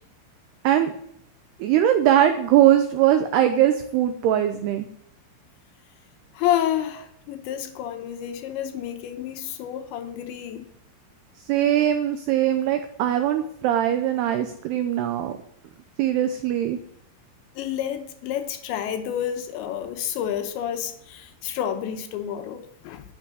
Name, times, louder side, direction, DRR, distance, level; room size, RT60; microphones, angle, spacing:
voice 1, 1.6-4.9 11.5-15.3 16.0-16.8, right 11 dB, 85° right, 8 dB, 2.3 m, -21 dB
voice 2, 6.3-10.7 17.6-23.0, left 10 dB, 80° left, 7 dB, 3.0 m, -29 dB
10.0 x 8.3 x 9.6 m, 0.73 s
omnidirectional pair, 5.7 m